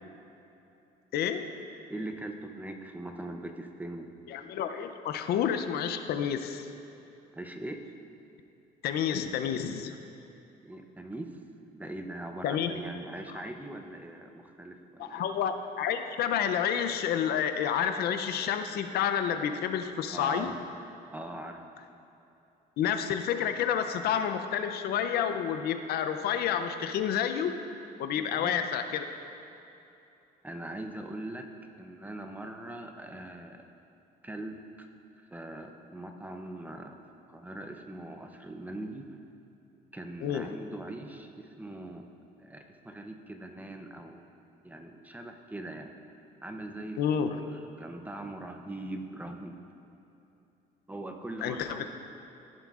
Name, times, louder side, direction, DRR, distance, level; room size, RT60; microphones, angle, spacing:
voice 1, 1.1-1.5 4.3-6.7 8.8-10.0 12.4-12.8 15.0-20.5 22.8-27.6 28.0-29.1 40.2-40.4 47.0-47.3 51.4-51.9, left 8 dB, 70° left, 8 dB, 0.5 m, -29 dB
voice 2, 1.9-4.2 7.3-7.8 10.6-11.4 11.7-15.2 20.1-20.6 21.1-21.6 28.1-28.6 30.4-31.5 31.8-33.7 34.2-34.9 35.2-37.0 37.3-39.1 39.9-42.0 42.4-44.2 44.6-45.9 46.4-47.0 47.3-49.6 50.9-51.9, right 1 dB, 10° right, 4 dB, 0.6 m, -41 dB
15.0 x 7.4 x 2.4 m, 2.9 s
cardioid pair, 110°, 17 cm